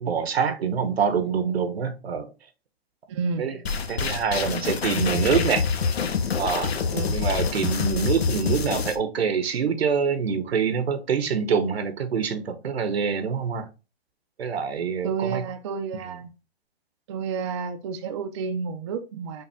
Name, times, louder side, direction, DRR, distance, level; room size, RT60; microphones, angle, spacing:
voice 1, 0.0-2.3 3.4-3.6 3.9-5.6 6.4-6.7 7.1-13.7 14.4-15.4 16.1-16.2, right 6 dB, 85° right, 1.0 m, -25 dB
voice 2, 3.1-3.5 6.9-7.2 15.0-16.3 17.1-19.4, right 5 dB, 30° right, 0.4 m, -30 dB
sound 1, 3.7-9.0, left 5 dB, 90° left, 0.8 m, -26 dB
5.6 x 2.2 x 3.4 m
hypercardioid pair, 145°, 30 cm